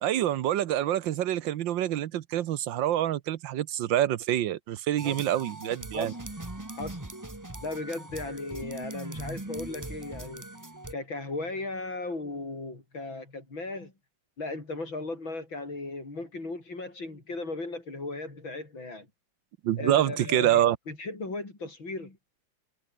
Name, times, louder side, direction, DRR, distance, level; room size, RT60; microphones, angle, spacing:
voice 1, 0.0-6.1 19.6-20.8, right 12 dB, 75° right, 1.5 m, -26 dB
sound 1, 5.0-10.9, right 2 dB, 10° right, 1.4 m, -40 dB
voice 2, 7.6-10.5 10.9-13.9 14.4-19.1 19.8-22.2, left 2 dB, 80° left, 7.4 m, -36 dB
omnidirectional pair, 2.1 m